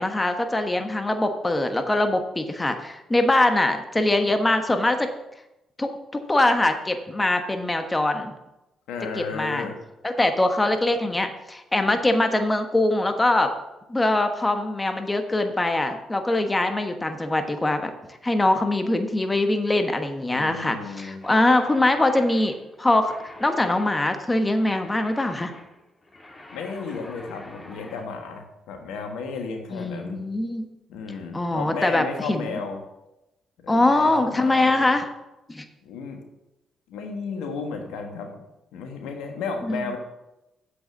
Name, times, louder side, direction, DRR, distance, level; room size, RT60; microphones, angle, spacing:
voice 1, 0.0-5.1 5.8-8.3 9.1-9.7 10.0-13.5 13.9-17.9 18.2-23.1 23.4-25.5 29.7-30.7 31.3-32.6 33.7-35.1 35.5-35.6 39.6-40.0, left 2 dB, 20° left, 6 dB, 1.3 m, -23 dB
voice 2, 8.9-9.8 20.3-21.3 26.5-30.2 30.9-32.8 33.6-34.9 35.8-36.2 36.9-38.4 38.7-40.0, left 4 dB, 75° left, 4 dB, 1.4 m, -33 dB
sound 1, 21.2-28.1, left 2 dB, 40° left, 2.6 m, -46 dB
7.7 x 6.7 x 7.6 m, 0.94 s
hypercardioid pair, 50°, 0 cm